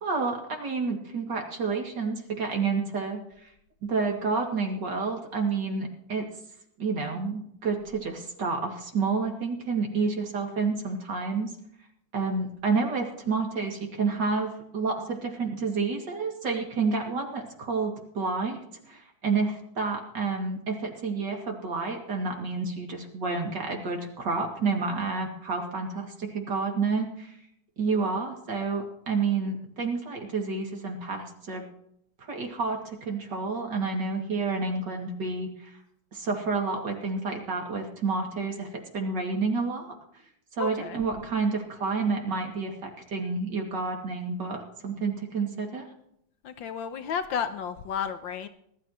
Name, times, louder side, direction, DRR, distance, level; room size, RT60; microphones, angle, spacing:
voice 1, 0.0-3.5 3.8-6.3 6.8-11.5 12.1-18.6 18.9-27.4 27.8-31.6 32.2-35.8 36.1-38.7 38.9-39.9 40.5-45.9, right 4 dB, 65° right, 1 dB, 3.0 m, -29 dB
voice 2, 40.6-41.0 46.4-48.5, left 7 dB, 75° left, 9 dB, 1.6 m, -32 dB
20.5 x 12.5 x 3.1 m, 0.71 s
omnidirectional pair, 2.1 m